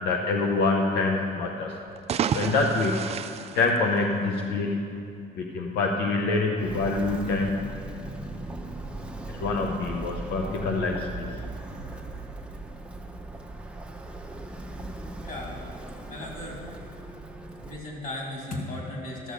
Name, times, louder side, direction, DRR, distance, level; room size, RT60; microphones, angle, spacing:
voice 1, 0.0-1.7 2.3-3.1 3.5-5.0 5.4-7.6 9.3-11.3, left 3 dB, 85° left, 1 dB, 0.8 m, -26 dB
sound 1, 1.9-4.5, right 8 dB, 40° right, 0.4 m, -31 dB
Walk footsteps, 6.6-17.8, right 2 dB, 5° right, 0.8 m, -38 dB
voice 2, 15.2-15.6 16.1-16.6 17.6-19.3, left 1 dB, 55° left, -2 dB, 2.9 m, -36 dB
12.5 x 6.5 x 5.1 m, 2.5 s
cardioid pair, 110°, 17 cm